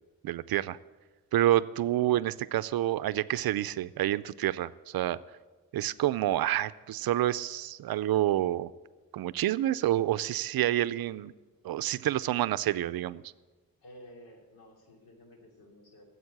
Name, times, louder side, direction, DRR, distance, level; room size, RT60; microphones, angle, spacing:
voice 1, 0.2-0.8 1.3-5.2 5.7-8.7 9.1-11.3 11.6-13.2, right 13 dB, 80° right, 16 dB, 0.5 m, -28 dB
voice 2, 13.8-16.0, equal, 90° left, 1 dB, 2.9 m, -53 dB
14.5 x 8.1 x 8.0 m, 1.3 s
wide cardioid pair, 160°, 36 cm